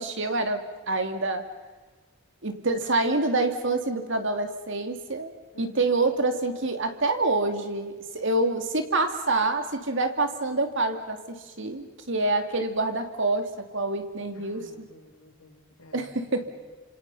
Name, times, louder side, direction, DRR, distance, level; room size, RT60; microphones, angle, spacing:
voice 1, 0.0-1.5 2.4-14.9 15.9-16.5, right 2 dB, 60° right, 6 dB, 2.6 m, -27 dB
voice 2, 5.5-6.0 14.3-16.5, left 1 dB, 90° left, -1 dB, 6.7 m, -52 dB
29.0 x 27.0 x 5.6 m, 1.3 s
head